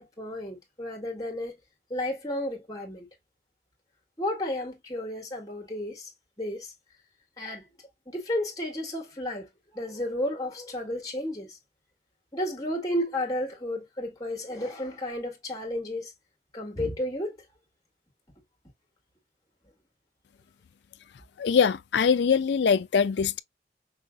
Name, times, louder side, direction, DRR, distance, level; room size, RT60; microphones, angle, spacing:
voice 1, 0.0-1.5 1.9-3.1 4.2-6.1 6.4-6.7 7.4-7.7 8.1-9.5 9.7-11.5 12.3-16.1 16.5-17.4, left 1 dB, 20° left, 1.9 m, -32 dB
voice 2, 21.4-23.4, left 6 dB, 70° left, 0.4 m, -23 dB
5.7 x 3.4 x 2.3 m
head